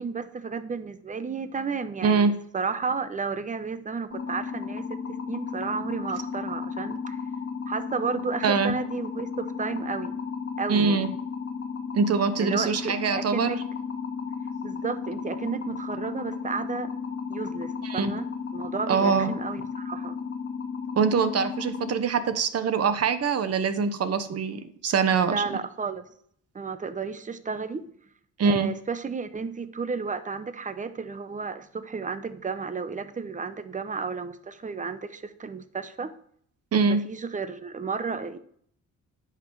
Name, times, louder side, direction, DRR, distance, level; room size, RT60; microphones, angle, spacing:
voice 1, 0.0-2.3 2.5-7.2 7.7-10.2 10.6-11.2 12.4-13.6 14.6-16.9 17.3-18.3 18.5-20.2 25.2-26.0 26.5-27.9 28.5-36.1 36.9-38.4, right 5 dB, 25° right, 12 dB, 0.9 m, -32 dB
voice 2, 2.0-2.3 8.4-8.7 10.7-11.1 11.9-13.6 17.8-18.1 18.9-19.3 21.0-25.4 28.4-28.7 36.7-37.0, right 5 dB, 55° right, 11 dB, 1.1 m, -23 dB
sound 1, 4.1-21.9, left 5 dB, 45° left, 1.5 m, -34 dB
10.0 x 5.9 x 4.7 m, 0.64 s
cardioid pair, 90°, 30 cm